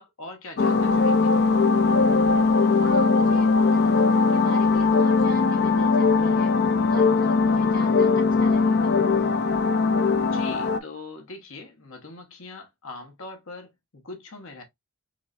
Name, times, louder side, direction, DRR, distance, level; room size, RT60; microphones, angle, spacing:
voice 1, 0.0-1.4 10.3-14.6, left 3 dB, 60° left, 1.1 m, -41 dB
sound 1, 0.6-10.8, left 4 dB, 45° left, 0.4 m, -20 dB
voice 2, 2.7-9.0, right 2 dB, 40° right, 2.0 m, -43 dB
4.7 x 3.1 x 2.5 m
head